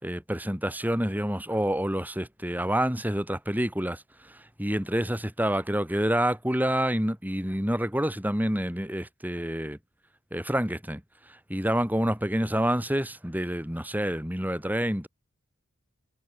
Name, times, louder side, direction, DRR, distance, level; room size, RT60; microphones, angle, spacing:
voice 1, 0.0-9.8 10.3-15.1, equal, 10° right, 4.5 m, -28 dB
head